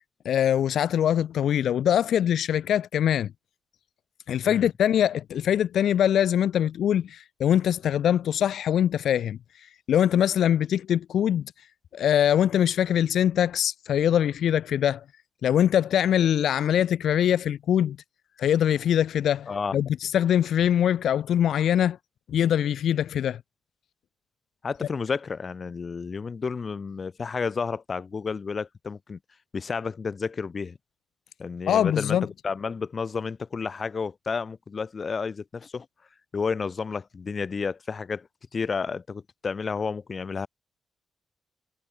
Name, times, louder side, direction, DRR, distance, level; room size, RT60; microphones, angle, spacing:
voice 1, 0.2-3.3 4.3-11.5 11.9-15.0 15.4-18.0 18.4-22.0 22.3-23.4 31.7-32.3, left 10 dB, 80° left, 0.3 m, -23 dB
voice 2, 19.5-19.8 24.6-29.2 29.5-30.8 31.4-32.2 32.4-35.9 36.3-38.3 38.5-40.5, left 5 dB, 35° left, 0.6 m, -31 dB
wide cardioid pair, 135°, 0 cm